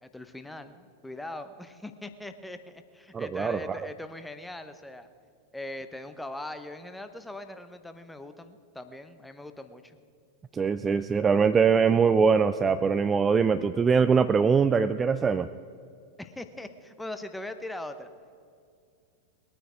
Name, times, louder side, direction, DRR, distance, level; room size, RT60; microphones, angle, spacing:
voice 1, 0.0-5.1 5.5-10.0 16.2-18.1, left 1 dB, 5° left, 9 dB, 0.9 m, -41 dB
voice 2, 3.1-3.8 10.5-15.5, right 5 dB, 20° right, 12 dB, 0.4 m, -22 dB
21.0 x 9.2 x 5.0 m, 2.3 s
figure-of-eight pair, 90°, 0 cm